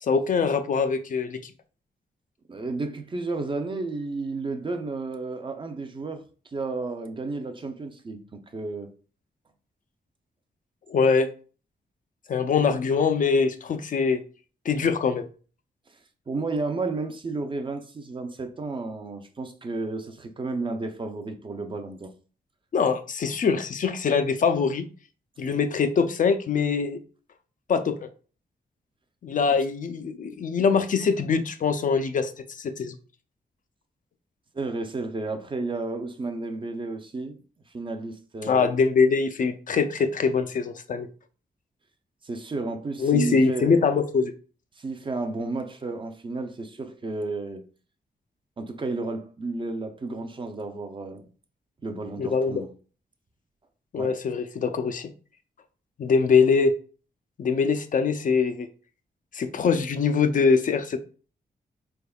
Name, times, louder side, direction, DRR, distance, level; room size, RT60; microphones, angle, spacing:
voice 1, 0.0-1.5 10.9-11.3 12.3-14.2 14.7-15.3 22.7-24.9 25.4-27.0 27.7-28.1 29.2-33.0 38.4-41.1 43.0-44.3 52.2-52.6 53.9-55.1 56.0-56.7 57.4-58.7 59.3-61.0, left 5 dB, 50° left, 0.4 m, -23 dB
voice 2, 2.5-8.9 16.3-22.1 34.5-37.4 37.7-38.7 42.2-43.9 44.8-47.6 48.6-51.3 51.8-52.7 54.0-54.2, right 3 dB, 30° right, 0.4 m, -32 dB
4.4 x 3.5 x 2.3 m
wide cardioid pair, 140°, 17 cm